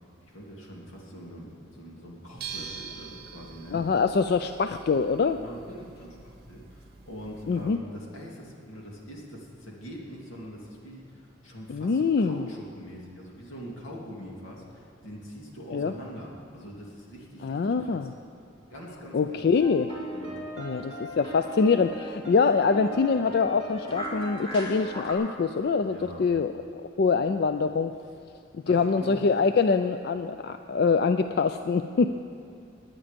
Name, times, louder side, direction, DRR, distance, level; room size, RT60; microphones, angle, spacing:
voice 1, 0.2-3.8 5.3-18.1 18.7-19.5 20.1-20.4 25.9-26.3 28.6-29.1, equal, 85° left, -2 dB, 2.6 m, -43 dB
sound 1, 2.4-7.8, right 6 dB, 50° right, 1.0 m, -44 dB
voice 2, 3.7-5.4 7.5-7.8 11.7-12.5 15.7-15.9 17.4-18.1 19.1-19.9 20.6-26.5 27.0-27.9 28.7-32.1, left 5 dB, 55° left, 9 dB, 0.3 m, -24 dB
sound 2, 19.6-25.1, equal, 30° left, 1.9 m, -38 dB
19.0 x 9.7 x 5.2 m, 2.3 s
head